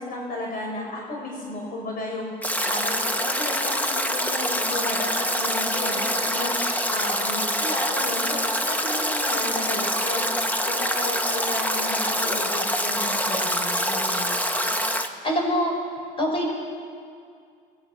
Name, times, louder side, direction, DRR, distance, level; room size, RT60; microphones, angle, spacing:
voice 1, 0.0-2.3 2.7-6.5 6.9-10.3 10.7-14.4, left 2 dB, 60° left, -1 dB, 5.2 m, -33 dB
Stream / Drip / Trickle dribble, 2.4-15.1, equal, 10° left, 1.6 m, -25 dB
voice 2, 15.2-15.7 16.2-16.5, equal, 30° left, 1 dB, 6.6 m, -24 dB
28.5 x 21.0 x 6.1 m, 2.2 s
cardioid pair, 110°, 17 cm